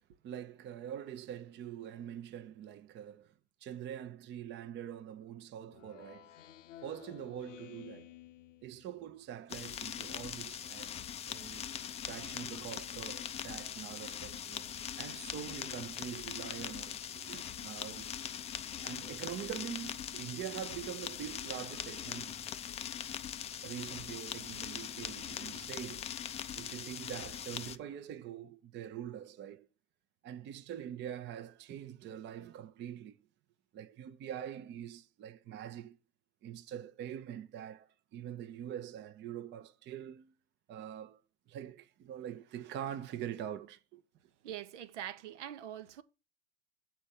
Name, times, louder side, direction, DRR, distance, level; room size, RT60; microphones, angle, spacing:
voice 1, 0.2-3.3 3.6-6.3 6.8-8.1 8.6-11.0 11.3-11.7 12.0-14.7 15.0-17.0 17.3-18.1 18.8-22.4 23.6-26.1 26.6-29.7 30.2-33.2 33.7-36.0 36.4-40.3 40.7-41.2 41.5-44.0, right 10 dB, 30° right, 0.8 m, -44 dB
Speech synthesizer, 5.7-9.2, left 13 dB, 85° left, 0.8 m, -54 dB
sound 1, 9.5-27.8, left 9 dB, 15° left, 0.4 m, -41 dB
voice 2, 44.4-46.0, right 11 dB, 70° right, 1.0 m, -43 dB
8.1 x 4.5 x 6.4 m
hypercardioid pair, 110°, 37 cm